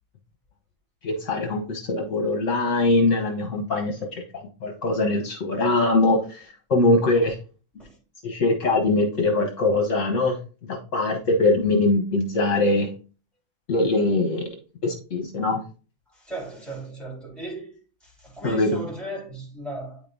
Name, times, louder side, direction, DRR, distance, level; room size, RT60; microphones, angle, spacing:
voice 1, 1.0-7.4 8.2-10.4 10.7-12.9 13.7-14.5 14.8-15.6 18.4-18.8, left 2 dB, 65° left, 1.3 m, -22 dB
voice 2, 16.1-20.0, right 2 dB, ahead, 3.7 m, -36 dB
9.0 x 5.2 x 2.6 m
omnidirectional pair, 1.4 m